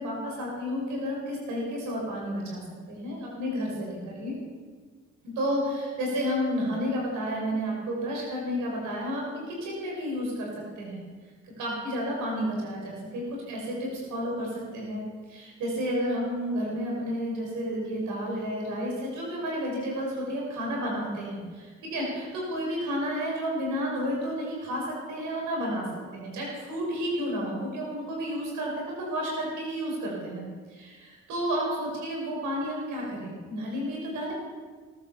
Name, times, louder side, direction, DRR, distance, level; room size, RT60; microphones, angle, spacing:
voice 1, 0.0-2.6 2.9-4.4 5.2-10.5 10.8-11.0 11.6-15.0 15.3-25.9 26.1-34.3, equal, 85° right, -2 dB, 5.8 m, -31 dB
18.5 x 9.7 x 7.1 m, 1.5 s
supercardioid pair, 55°, 30 cm